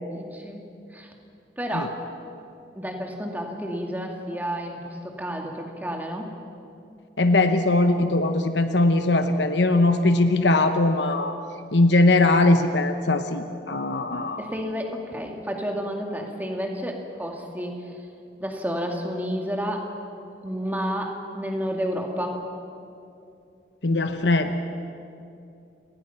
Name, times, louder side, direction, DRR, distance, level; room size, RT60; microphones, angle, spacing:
voice 1, 0.1-0.6 0.9-1.1 1.6-2.0 2.7-6.3 14.4-18.0 18.4-19.9 20.4-22.4, equal, 10° right, 2 dB, 2.2 m, -30 dB
voice 2, 7.2-11.4 11.7-14.4 23.8-24.6, left 2 dB, 85° left, 8 dB, 1.0 m, -20 dB
29.5 x 19.0 x 5.8 m, 2.6 s
head